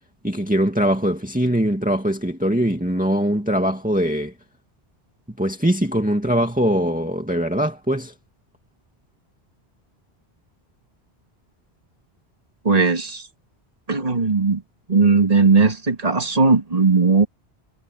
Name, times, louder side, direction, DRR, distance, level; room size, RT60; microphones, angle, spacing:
voice 1, 0.2-4.3 5.4-8.1, equal, 10° right, 2.3 m, -21 dB
voice 2, 12.6-13.3 13.9-14.6 14.9-17.3, right 4 dB, 35° right, 2.2 m, -17 dB
omnidirectional pair, 1.1 m